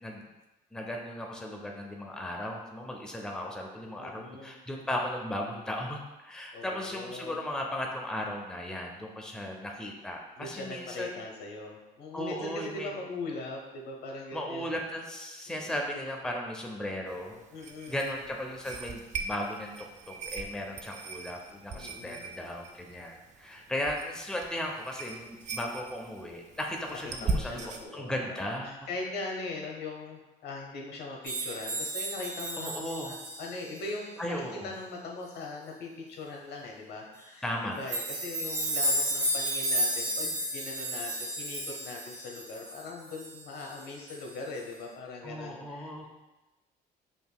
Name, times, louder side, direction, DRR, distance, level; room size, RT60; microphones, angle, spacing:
voice 1, 0.7-11.2 12.1-12.9 14.3-17.4 17.9-28.8 32.6-33.2 34.2-34.7 37.4-37.8 45.2-46.1, left 1 dB, 5° left, 0 dB, 0.6 m, -36 dB
voice 2, 4.0-4.5 6.5-7.4 10.4-14.7 15.5-15.8 17.5-18.0 21.7-22.3 27.0-28.4 28.7-34.3 34.6-46.1, left 3 dB, 65° left, 0 dB, 0.8 m, -40 dB
sound 1, 17.1-27.8, right 3 dB, 40° right, 0.5 m, -40 dB
sound 2, 31.2-33.8 37.9-43.8 44.1-44.3 44.6-44.7, right 1 dB, 85° right, 1.5 m, -32 dB
5.2 x 2.8 x 2.2 m, 1.1 s
supercardioid pair, 75°, 18 cm